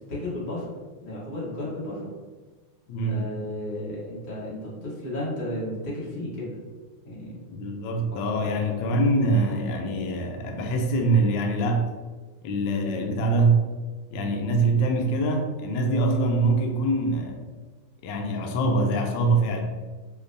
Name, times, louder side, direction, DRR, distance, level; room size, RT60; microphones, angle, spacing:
voice 1, 0.1-0.6 1.0-2.1 3.0-6.6 7.0-7.4 8.1-8.2, left 1 dB, 50° left, -7 dB, 1.5 m, -33 dB
voice 2, 2.9-3.3 7.5-11.9 12.4-13.6 14.1-17.4 18.0-19.6, right 2 dB, 80° left, 2 dB, 1.0 m, -24 dB
4.9 x 2.2 x 2.6 m, 1.3 s
omnidirectional pair, 2.4 m